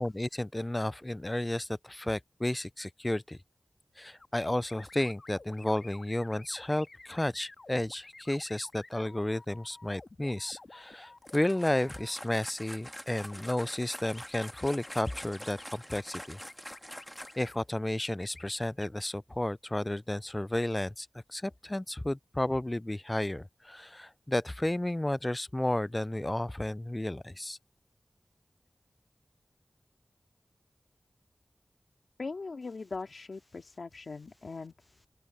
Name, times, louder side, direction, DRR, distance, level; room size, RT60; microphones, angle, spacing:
voice 1, 0.0-3.4 4.0-16.4 17.4-27.6, left 1 dB, 25° left, 0.3 m, -32 dB
sound 1, 4.2-12.1 13.2-13.6 13.9-17.6 18.2-18.9, left 3 dB, 55° left, 1.6 m, -52 dB
sound 2, 11.2-17.6, equal, ahead, 1.5 m, -46 dB
voice 2, 32.2-34.7, left 4 dB, 75° left, 2.3 m, -40 dB
open air
cardioid pair, 45°, 0 cm